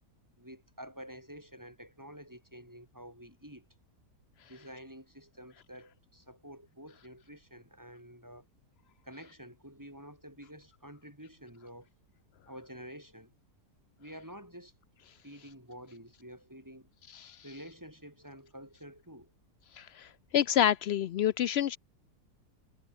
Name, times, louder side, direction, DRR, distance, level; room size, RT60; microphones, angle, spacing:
voice 1, 0.4-3.7 4.4-8.5 9.0-11.9 12.5-13.3 14.0-14.7 15.2-16.9 17.4-19.3, equal, 10° right, 7.6 m, -49 dB
voice 2, 20.3-21.8, left 10 dB, 90° left, 0.5 m, -26 dB
omnidirectional pair, 1.7 m